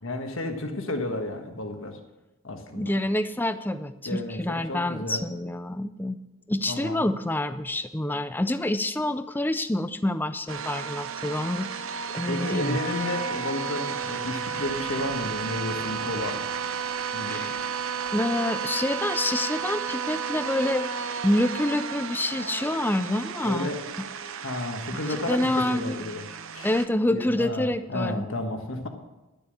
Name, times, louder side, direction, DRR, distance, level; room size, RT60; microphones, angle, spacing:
voice 1, 0.0-2.0 2.4-2.9 4.0-5.2 6.7-7.1 12.3-16.4 17.1-17.5 23.4-23.8 24.4-26.2 26.5-26.7 27.1-28.9, left 1 dB, 60° left, 5 dB, 1.5 m, -32 dB
voice 2, 2.7-6.2 6.5-11.7 12.1-12.8 17.3-17.6 18.1-20.9 21.2-23.7 24.9-26.0 26.6-28.2, left 1 dB, 10° left, 11 dB, 0.4 m, -27 dB
sound 1, 10.5-26.9, right 6 dB, 65° right, 0.7 m, -33 dB
sound 2, 10.7-20.5, equal, 40° right, 2.1 m, -50 dB
12.0 x 6.9 x 7.9 m, 1.1 s
head